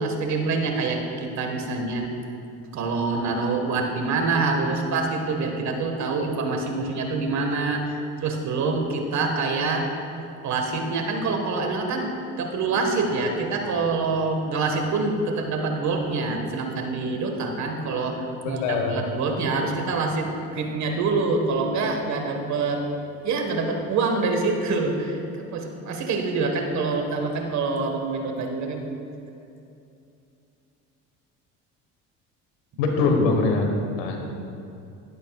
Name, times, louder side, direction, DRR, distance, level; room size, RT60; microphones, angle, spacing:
voice 1, 0.0-2.1 2.7-9.9 10.4-12.1 12.4-22.8 23.2-28.9, right 3 dB, 50° right, 3 dB, 1.5 m, -26 dB
voice 2, 18.4-19.0 32.8-34.2, left 3 dB, 85° left, 3 dB, 1.3 m, -23 dB
11.5 x 11.0 x 2.4 m, 2.7 s
supercardioid pair, 75°, 35 cm